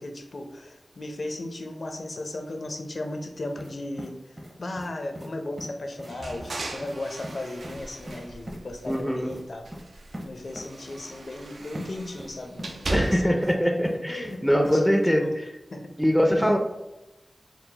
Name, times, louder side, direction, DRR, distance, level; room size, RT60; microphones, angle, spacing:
voice 1, 0.0-9.7 10.2-13.4 13.9-15.3 15.7-15.9 16.4-16.5, left 2 dB, 65° left, 5 dB, 0.5 m, -36 dB
sound 1, 3.6-3.7 4.0-4.9 5.1-5.3 5.6-5.7 6.0-6.1 6.4-6.5 6.8-7.0 7.2-7.4 7.6-7.8 8.1-8.6 8.9-9.0 9.3-9.4 9.7-9.8 10.1-10.3 10.5-10.7 11.7-11.9 12.2-12.7 13.0-13.5 13.8-14.4 14.6-14.8, equal, 30° right, 0.7 m, -39 dB
sound 2, 6.0-9.2 9.6-13.5, right 2 dB, 80° right, 0.4 m, -37 dB
voice 2, 8.9-9.3 12.9-15.3 16.0-16.6, equal, ahead, 3 dB, 0.4 m, -22 dB
4.5 x 2.0 x 3.9 m, 0.95 s
wide cardioid pair, 85°, 0 cm